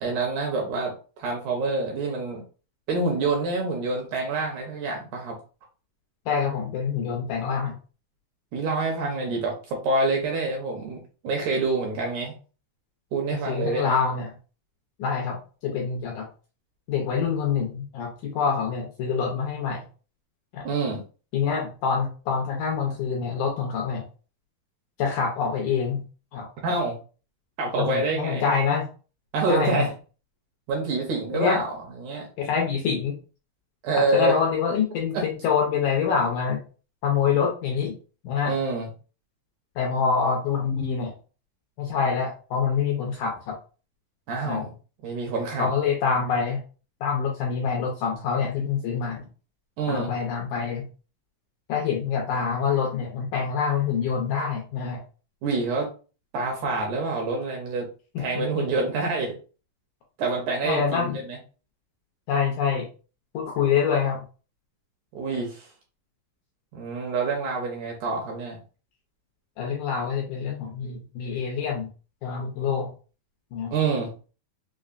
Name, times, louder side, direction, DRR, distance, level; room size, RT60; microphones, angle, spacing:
voice 1, 0.0-2.4 2.9-5.4 8.5-12.3 13.1-14.0 20.7-21.0 26.6-27.0 27.6-28.4 29.3-29.9 30.7-32.3 33.8-34.3 35.1-35.2 38.5-38.9 44.3-44.7 45.0-45.7 49.8-50.1 55.4-55.9 56.3-57.9 58.2-59.3 60.2-61.4 65.1-65.7 66.7-68.6 73.7-74.1, right 3 dB, 75° right, 1 dB, 1.9 m, -27 dB
voice 2, 6.3-7.8 13.3-14.3 15.0-16.3 16.9-19.9 20.5-20.6 21.3-24.0 25.0-26.1 26.3-26.5 27.8-28.9 29.5-29.9 31.3-31.6 32.4-33.2 34.0-36.6 37.0-38.0 38.2-38.5 39.8-41.1 41.8-43.6 44.5-44.7 45.6-46.6 47.0-49.2 49.9-50.9 51.7-55.0 58.2-58.6 60.6-61.2 62.3-62.9 63.3-64.2 69.6-71.9 72.2-72.9 73.5-73.7, left 6 dB, 75° left, 1 dB, 1.9 m, -26 dB
5.5 x 2.1 x 2.5 m, 0.36 s
omnidirectional pair, 4.0 m